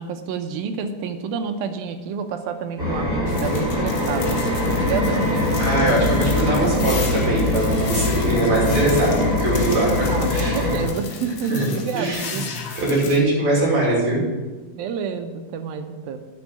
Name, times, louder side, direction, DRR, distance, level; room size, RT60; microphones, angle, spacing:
voice 1, 0.0-4.3 4.8-5.5 10.1-12.5 14.8-16.2, right 6 dB, 80° right, 7 dB, 2.6 m, -29 dB
sound 1, 2.8-10.8, left 2 dB, 25° right, 3.5 m, -22 dB
sound 2, 3.3-13.2, left 5 dB, 70° left, 1.3 m, -36 dB
voice 2, 5.6-10.7 11.5-11.7 11.9-14.2, right 2 dB, 50° right, -4 dB, 4.0 m, -22 dB
9.9 x 5.4 x 8.2 m, 1.3 s
omnidirectional pair, 4.1 m